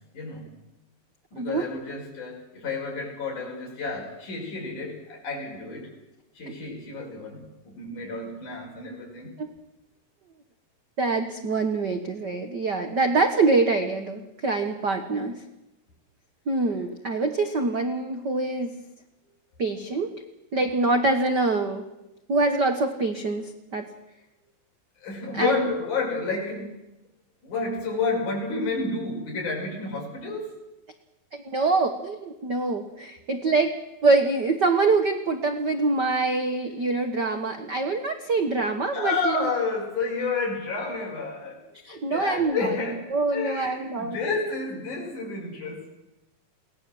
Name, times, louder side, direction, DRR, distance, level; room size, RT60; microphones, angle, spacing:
voice 1, 0.1-0.5 1.3-5.9 6.4-9.3 25.0-26.8 27.4-30.5 38.9-41.6 41.9-43.1 43.3-45.9, left 3 dB, 55° left, -1 dB, 7.2 m, -30 dB
voice 2, 1.4-1.7 9.4-9.5 11.0-15.4 16.5-18.8 19.6-20.1 20.5-21.8 22.3-23.9 25.3-25.7 31.3-33.7 34.0-39.5 41.8-42.7 43.1-44.2, right 3 dB, 70° right, 6 dB, 0.9 m, -25 dB
23.0 x 18.0 x 7.8 m, 0.96 s
omnidirectional pair, 4.1 m